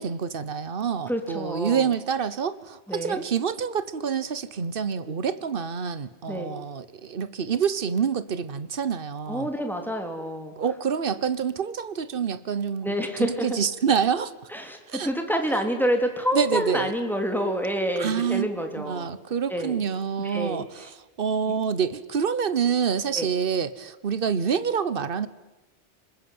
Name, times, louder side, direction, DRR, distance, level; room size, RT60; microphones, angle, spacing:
voice 1, 0.0-9.5 10.6-14.3 14.9-15.1 16.3-16.9 18.0-18.5 18.8-25.3, right 7 dB, 50° right, 15 dB, 1.3 m, -27 dB
voice 2, 1.1-1.9 2.9-3.2 6.3-6.6 9.3-10.5 12.8-13.6 14.5-19.1 19.5-19.8 20.2-20.9 21.5-21.6 23.1-23.3, equal, ahead, 4 dB, 3.4 m, -28 dB
26.0 x 21.0 x 9.5 m, 1.0 s
omnidirectional pair, 1.2 m